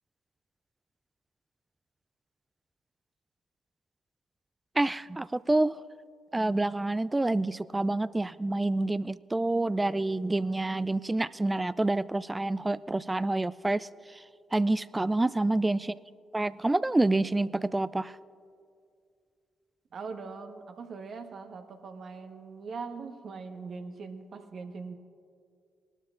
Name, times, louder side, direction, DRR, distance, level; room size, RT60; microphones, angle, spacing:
voice 1, 4.8-5.8 6.3-13.9 14.5-15.9 16.3-18.1, right 2 dB, 20° right, 17 dB, 0.4 m, -27 dB
voice 2, 19.9-24.9, right 4 dB, 60° right, 5 dB, 1.2 m, -41 dB
21.0 x 12.5 x 2.6 m, 2.3 s
hypercardioid pair, 40°, 0 cm